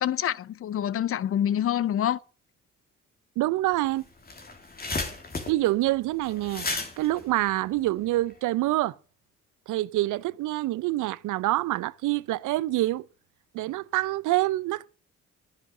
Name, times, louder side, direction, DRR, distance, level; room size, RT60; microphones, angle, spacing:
voice 1, 0.0-2.2, left 10 dB, 50° left, 0.6 m, -26 dB
voice 2, 3.4-4.0 5.5-6.7 7.0-8.9 9.7-13.1 13.5-14.9, right 17 dB, 85° right, 0.6 m, -26 dB
sound 1, 3.7-3.8 4.1-8.3, left 3 dB, 30° left, 2.9 m, -34 dB
12.0 x 9.5 x 6.6 m
cardioid pair, 90°, 30 cm